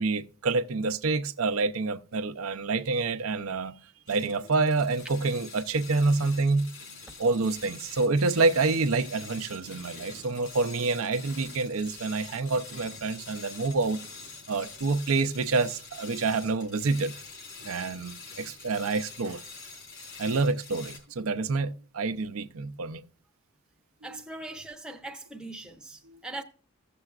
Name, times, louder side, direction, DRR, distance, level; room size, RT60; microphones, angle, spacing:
voice 1, 0.0-3.8 4.1-6.7 7.2-14.0 14.5-17.2 17.6-19.4 20.2-23.0 24.1-24.2 26.1-26.2, right 3 dB, 85° right, 0.6 m, -27 dB
sound 1, 4.1-21.0, left 4 dB, 60° left, 4.2 m, -45 dB
voice 2, 24.0-26.4, right 2 dB, 5° right, 0.7 m, -40 dB
15.5 x 6.9 x 2.4 m
head